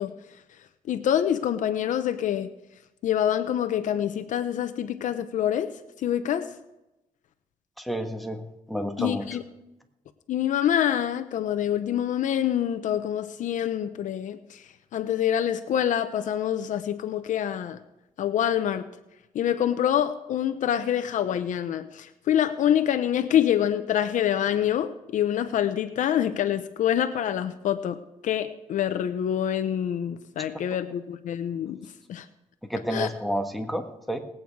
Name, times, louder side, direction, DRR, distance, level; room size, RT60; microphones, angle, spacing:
voice 1, 0.0-2.5 3.0-6.6 9.0-9.4 10.3-17.8 18.2-18.9 19.3-28.0 28.2-32.3 32.9-33.1, left 10 dB, 70° left, 9 dB, 0.8 m, -26 dB
voice 2, 7.8-9.3 32.7-34.2, equal, ahead, 5 dB, 1.5 m, -30 dB
19.5 x 8.8 x 4.7 m, 0.93 s
cardioid pair, 110°, 14 cm